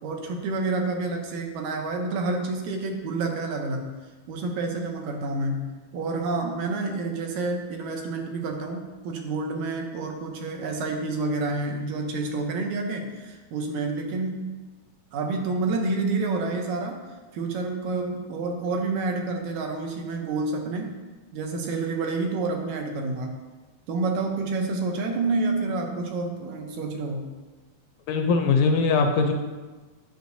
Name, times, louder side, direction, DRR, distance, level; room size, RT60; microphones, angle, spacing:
voice 1, 0.0-3.9 4.3-14.5 15.1-17.0 17.3-21.0 21.3-23.4 23.9-27.3, right 3 dB, 75° right, 3 dB, 2.1 m, -29 dB
voice 2, 28.1-29.3, left 4 dB, 80° left, 5 dB, 1.7 m, -21 dB
9.1 x 6.7 x 2.7 m, 1.3 s
omnidirectional pair, 3.5 m